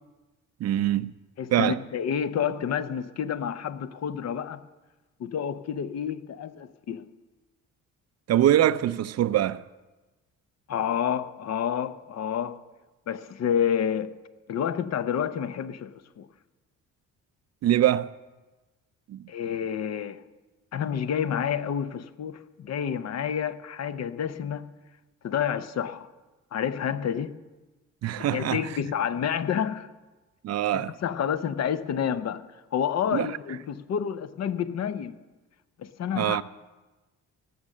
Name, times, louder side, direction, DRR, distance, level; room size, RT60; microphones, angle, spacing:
voice 1, 0.6-1.1 1.5-1.8 8.3-9.6 17.6-18.1 19.1-19.3 28.0-28.7 30.4-30.9 33.1-33.3 36.2-36.4, right 12 dB, 60° right, 0.5 m, -23 dB
voice 2, 1.4-4.6 5.2-7.1 10.7-12.6 13.1-14.1 14.5-16.3 19.3-20.2 20.7-24.7 25.2-26.1 26.5-27.4 28.2-29.9 30.7-32.4 32.7-35.2 35.8-36.4, left 8 dB, 60° left, 0.8 m, -29 dB
18.0 x 6.5 x 7.3 m
cardioid pair, 90°, 30 cm